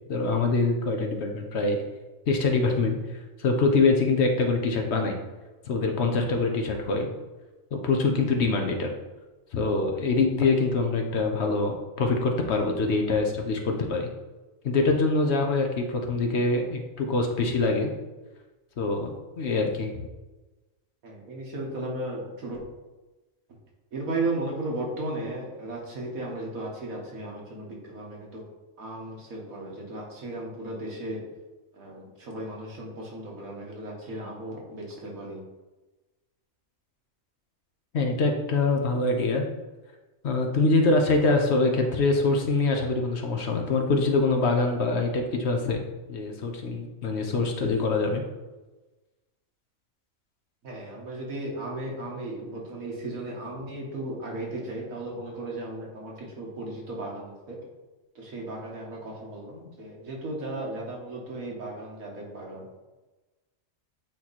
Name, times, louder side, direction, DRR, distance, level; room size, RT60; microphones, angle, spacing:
voice 1, 0.1-1.8 2.3-5.2 5.7-7.1 7.7-8.9 9.5-14.1 14.6-17.9 18.8-19.1 19.4-20.0 37.9-39.4 40.2-45.8 46.1-48.2, left 3 dB, 60° left, 3 dB, 1.0 m, -24 dB
voice 2, 21.0-22.6 23.9-28.4 28.8-31.2 31.7-35.4 50.6-57.6 58.2-62.7, right 2 dB, 85° right, -2 dB, 1.9 m, -35 dB
8.4 x 3.0 x 4.1 m, 1.2 s
omnidirectional pair, 1.4 m